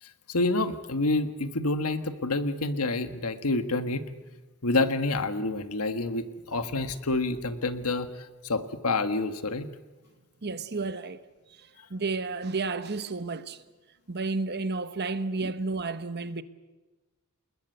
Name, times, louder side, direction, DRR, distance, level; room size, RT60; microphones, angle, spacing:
voice 1, 0.0-4.0 4.6-9.7 11.8-11.9, left 2 dB, 80° left, 1.6 m, -28 dB
voice 2, 10.4-11.2 11.5-13.6 14.1-16.4, right 3 dB, 50° right, 1.1 m, -32 dB
28.5 x 20.5 x 8.1 m
head